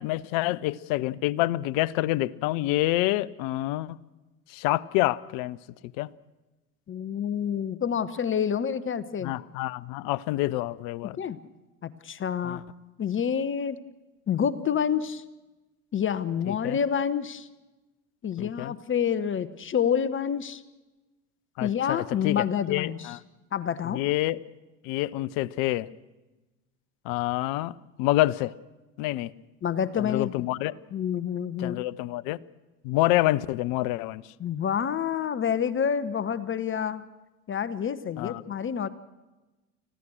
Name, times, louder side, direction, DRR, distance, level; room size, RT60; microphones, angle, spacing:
voice 1, 0.0-4.0 4.5-5.6 6.0-6.1 9.2-11.2 12.4-12.6 16.5-16.8 18.4-18.7 21.6-23.2 23.8-24.4 24.8-25.9 27.0-27.7 28.0-28.5 29.0-29.3 30.0-30.7 31.6-32.4 32.8-34.2 38.2-38.4, left 17 dB, 55° left, 21 dB, 0.8 m, -27 dB
voice 2, 6.9-9.3 11.2-11.4 11.8-12.6 13.0-13.8 14.3-15.2 15.9-17.5 18.2-20.6 21.6-23.2 23.5-24.0 29.6-30.3 30.9-31.8 34.4-37.0 37.5-38.9, left 8 dB, 30° left, 15 dB, 1.1 m, -28 dB
29.5 x 15.5 x 6.4 m, 1.1 s
figure-of-eight pair, 70°, 41 cm